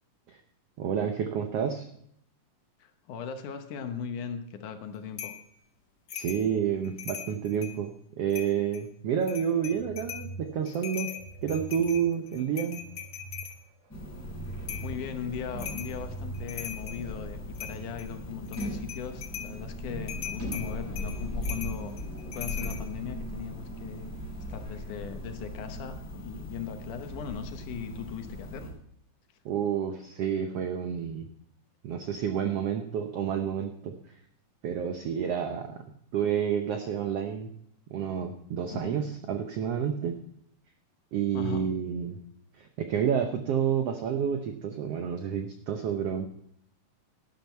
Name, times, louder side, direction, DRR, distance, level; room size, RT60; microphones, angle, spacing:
voice 1, 0.8-1.9 6.1-7.9 8.2-11.1 11.4-12.8 29.4-31.3 31.8-33.9 34.6-35.8 36.1-37.5 37.9-40.1 41.1-42.2 42.6-46.3, right 8 dB, 90° right, 5 dB, 1.3 m, -29 dB
voice 2, 2.8-5.3 9.0-9.1 14.8-22.0 22.3-24.1 24.5-28.8 38.7-39.0 41.3-41.7, left 7 dB, 70° left, 7 dB, 2.4 m, -38 dB
sound 1, 5.2-5.4 6.1-6.5 6.8-7.8 8.3-8.8 9.2-10.3 10.7-13.6 14.7-14.9 15.6-16.0 16.3-17.0 17.5-18.1 18.5-19.5 20.1-22.8, left 9 dB, 90° left, 0.9 m, -40 dB
sound 2, 9.3-18.0, right 2 dB, 65° right, 2.1 m, -45 dB
sound 3, 13.9-28.7, left 1 dB, 5° left, 5.5 m, -38 dB
12.0 x 11.0 x 4.4 m, 0.70 s
omnidirectional pair, 3.9 m